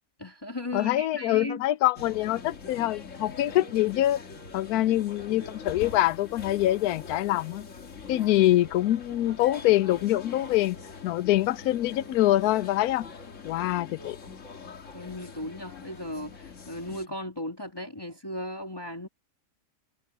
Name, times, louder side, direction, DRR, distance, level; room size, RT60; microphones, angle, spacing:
voice 1, 0.2-1.6 14.9-19.1, left 1 dB, 15° left, 1.8 m, -36 dB
voice 2, 0.7-4.2 4.5-7.7 8.1-10.8 11.0-13.1 13.4-14.2, left 15 dB, 80° left, 1.1 m, -24 dB
sound 1, 2.0-17.1, left 5 dB, 55° left, 2.0 m, -43 dB
omnidirectional pair, 1.6 m